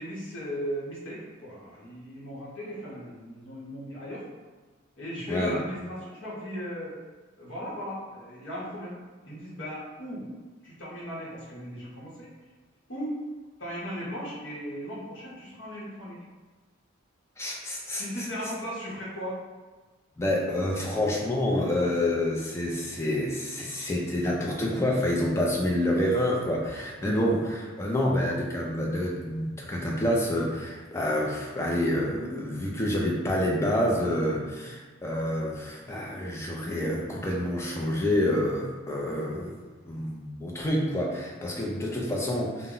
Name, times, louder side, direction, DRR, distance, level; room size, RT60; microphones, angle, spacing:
voice 1, 0.0-4.3 5.0-7.0 7.4-9.0 9.2-10.2 10.6-12.3 12.9-13.2 13.6-16.2 17.9-19.4 21.8-21.9 27.0-27.1 34.6-34.8 39.9-40.1 41.3-41.4, equal, 60° left, -7 dB, 0.8 m, -37 dB
voice 2, 17.4-18.0 20.2-39.6 39.9-42.7, left 1 dB, 15° left, -2 dB, 0.3 m, -28 dB
2.1 x 2.0 x 3.7 m, 1.3 s
head